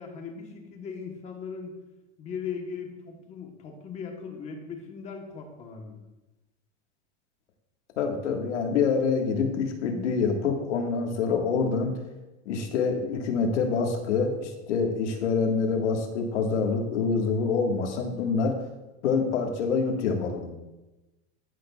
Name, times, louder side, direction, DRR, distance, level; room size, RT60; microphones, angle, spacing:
voice 1, 0.0-1.8 2.2-6.0, left 6 dB, 20° left, 2 dB, 1.1 m, -38 dB
voice 2, 8.0-11.9 12.4-18.5 19.0-20.5, left 5 dB, 85° left, 3 dB, 1.7 m, -26 dB
14.5 x 6.3 x 2.4 m, 1.0 s
supercardioid pair, 165°, 35 cm